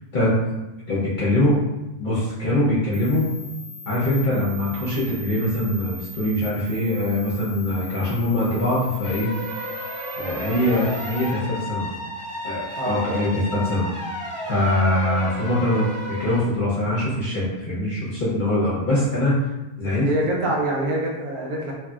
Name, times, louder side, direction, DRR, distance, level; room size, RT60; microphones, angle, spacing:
voice 1, 0.9-1.6 2.0-3.3 3.9-9.3 10.2-11.9 12.4-13.9 14.5-19.4 19.8-20.1, left 1 dB, 45° left, -9 dB, 0.7 m, -23 dB
sound 1, 2.9-11.3, right 1 dB, 70° right, 1.2 m, -40 dB
sound 2, 9.0-16.4, left 1 dB, 10° left, 1.0 m, -33 dB
voice 2, 20.0-21.7, right 1 dB, 85° right, -2 dB, 1.2 m, -25 dB
2.9 x 2.6 x 2.3 m, 1.0 s
omnidirectional pair, 1.5 m